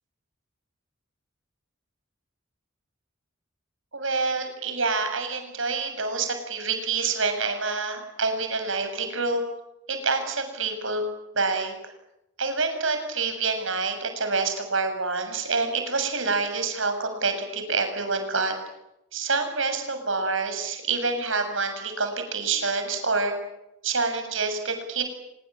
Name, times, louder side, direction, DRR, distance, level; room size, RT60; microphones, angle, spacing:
voice 1, 3.9-9.4 9.9-11.0 11.4-11.7 12.4-18.6 19.1-23.4 23.8-25.0, right 4 dB, 70° right, 6 dB, 7.1 m, -27 dB
25.5 x 23.0 x 8.9 m, 0.86 s
head